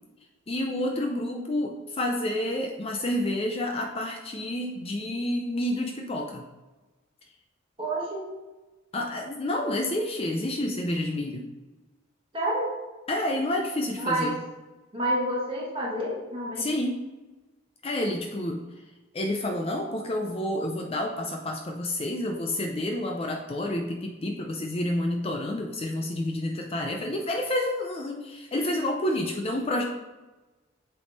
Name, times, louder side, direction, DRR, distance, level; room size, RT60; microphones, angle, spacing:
voice 1, 0.5-6.4 8.9-11.5 13.1-14.4 16.6-17.0 17.8-18.6 19.1-29.8, left 1 dB, 30° left, 2 dB, 0.5 m, -29 dB
voice 2, 7.8-8.3 12.3-12.8 14.0-14.4 14.9-16.7, right 1 dB, 25° right, -3 dB, 1.5 m, -29 dB
8.0 x 3.5 x 4.0 m, 1.2 s
head